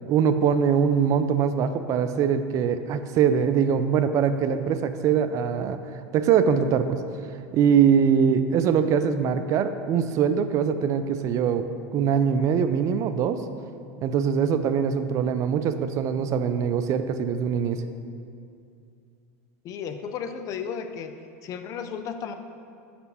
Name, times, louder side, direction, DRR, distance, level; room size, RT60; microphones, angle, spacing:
voice 1, 0.0-5.8 6.1-7.0 7.5-11.7 11.9-13.4 14.0-17.8, right 7 dB, 40° right, 10 dB, 0.3 m, -22 dB
voice 2, 19.6-21.1 21.4-22.3, left 7 dB, 45° left, 8 dB, 0.5 m, -34 dB
5.3 x 4.2 x 5.5 m, 2.4 s
supercardioid pair, 110°, 8 cm